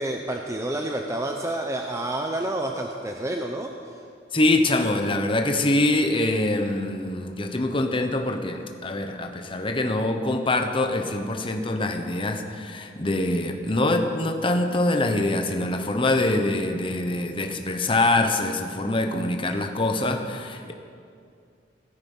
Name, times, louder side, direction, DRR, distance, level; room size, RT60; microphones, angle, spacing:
voice 1, 0.0-4.0, right 1 dB, 15° right, 2 dB, 0.7 m, -29 dB
voice 2, 4.3-20.7, left 2 dB, 30° left, 5 dB, 1.1 m, -24 dB
16.5 x 13.0 x 5.6 m, 2.3 s
head